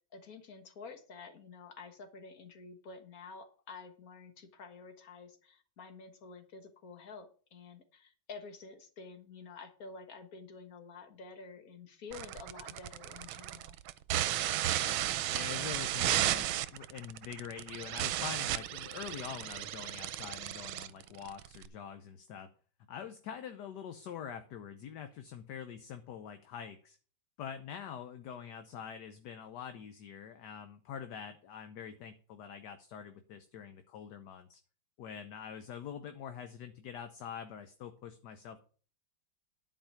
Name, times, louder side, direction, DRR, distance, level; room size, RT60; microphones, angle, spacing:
voice 1, 0.1-13.8, left 4 dB, 50° left, 8 dB, 1.7 m, -50 dB
sound 1, 12.1-21.7, right 13 dB, 90° right, 1.5 m, -34 dB
voice 2, 15.3-22.5 22.9-27.0 27.4-34.6 35.0-38.6, left 8 dB, 65° left, 8 dB, 1.3 m, -45 dB
11.0 x 4.8 x 7.1 m, 0.41 s
omnidirectional pair, 2.1 m